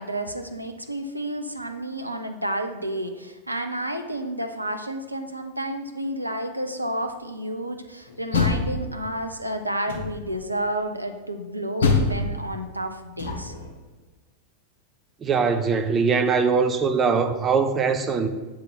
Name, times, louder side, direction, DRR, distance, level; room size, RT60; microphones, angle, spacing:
voice 1, 0.0-13.5, right 1 dB, 85° right, 0.6 m, -31 dB
Door, 8.1-9.3 9.9-10.4 11.8-13.7, left 4 dB, 65° left, 1.1 m, -25 dB
voice 2, 15.2-18.3, right 5 dB, 25° right, 0.6 m, -22 dB
7.3 x 3.8 x 5.7 m
figure-of-eight pair, 90°, 0 cm